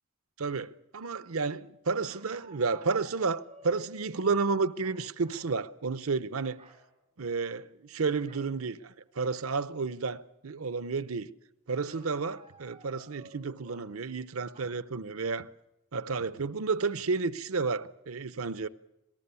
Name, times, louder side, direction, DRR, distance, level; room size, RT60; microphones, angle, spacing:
voice 1, 0.4-6.6 7.2-11.3 11.7-15.5 15.9-18.7, right 4 dB, 90° right, 0.8 m, -31 dB
sound 1, 2.1-4.2 4.8-5.6 5.9-6.2 6.5-6.8 8.3-8.5 9.0-9.1 9.5-9.9 11.9-13.9 14.5-14.6, right 2 dB, 25° right, 5.4 m, -54 dB
26.5 x 18.5 x 7.0 m
head